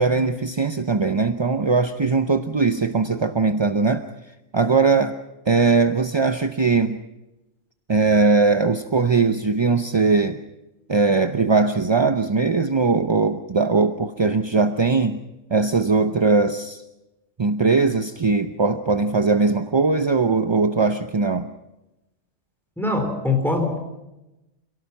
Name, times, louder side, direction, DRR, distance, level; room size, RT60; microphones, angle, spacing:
voice 1, 0.0-4.1 4.5-5.1 5.5-7.0 7.9-10.4 10.9-15.2 15.5-16.8 17.4-21.5, right 4 dB, 30° right, 8 dB, 0.5 m, -20 dB
voice 2, 22.8-23.8, left 2 dB, ahead, 3 dB, 4.4 m, -22 dB
27.5 x 17.5 x 6.0 m, 0.97 s
omnidirectional pair, 1.3 m